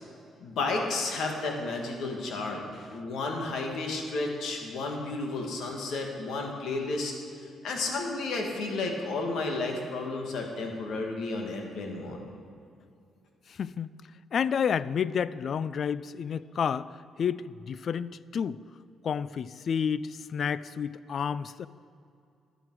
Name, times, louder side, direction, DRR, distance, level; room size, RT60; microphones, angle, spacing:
voice 1, 0.4-2.6 2.9-7.1 7.6-12.2, left 3 dB, 75° left, 1 dB, 1.8 m, -32 dB
voice 2, 13.6-13.9 14.3-16.9 17.2-18.6 19.0-21.7, left 7 dB, 55° left, 18 dB, 0.3 m, -30 dB
11.5 x 10.5 x 4.7 m, 2.5 s
cardioid pair, 90°, 0 cm